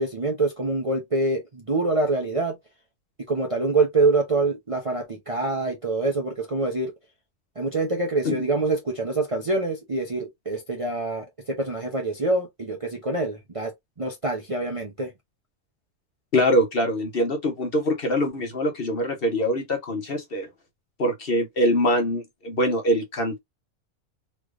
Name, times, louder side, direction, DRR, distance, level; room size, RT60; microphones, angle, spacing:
voice 1, 0.0-2.6 3.3-6.9 7.6-15.1, right 3 dB, 35° right, 0.6 m, -25 dB
voice 2, 16.3-20.5 21.0-23.4, left 1 dB, 50° left, 1.0 m, -23 dB
3.3 x 3.0 x 2.4 m
omnidirectional pair, 1.4 m